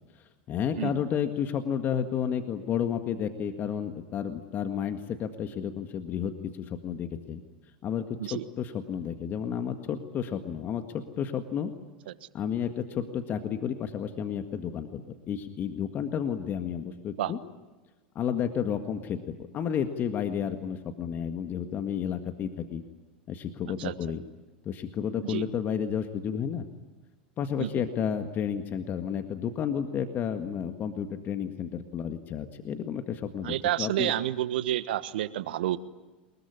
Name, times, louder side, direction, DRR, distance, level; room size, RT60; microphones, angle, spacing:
voice 1, 0.5-6.3 6.7-7.4 7.8-11.7 12.3-17.4 18.2-22.8 23.3-24.2 24.7-26.7 27.4-34.1, left 8 dB, 35° left, 7 dB, 1.8 m, -31 dB
voice 2, 33.4-35.8, right 13 dB, 70° right, 14 dB, 1.3 m, -29 dB
23.5 x 21.5 x 10.0 m, 1.2 s
hypercardioid pair, 100°, 5 cm